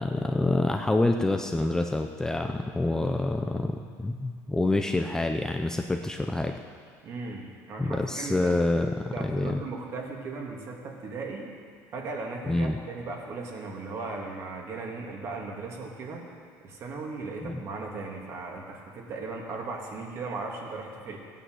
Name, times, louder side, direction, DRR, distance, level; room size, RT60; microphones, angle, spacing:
voice 1, 0.0-6.5 7.8-9.6 12.5-12.8 17.4-17.6, left 2 dB, 10° left, 4 dB, 0.6 m, -27 dB
voice 2, 7.0-8.6 9.1-11.5 11.9-16.2 16.6-21.2, right 3 dB, 45° right, 0 dB, 2.7 m, -37 dB
15.5 x 9.2 x 8.1 m, 2.1 s
cardioid pair, 135°, 7 cm